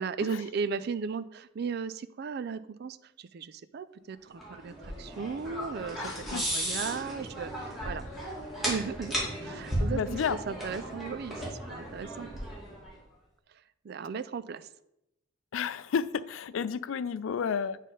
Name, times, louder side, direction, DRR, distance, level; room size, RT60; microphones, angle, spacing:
voice 1, 0.0-8.1 8.6-9.1 9.4-12.3 13.8-14.7, right 5 dB, 55° right, 14 dB, 0.4 m, -36 dB
sound 1, 4.4-12.9, equal, ahead, 2.4 m, -35 dB
voice 2, 5.9-6.5 9.9-10.4 15.5-17.8, left 6 dB, 85° left, 16 dB, 0.4 m, -31 dB
8.4 x 3.6 x 5.4 m, 0.83 s
head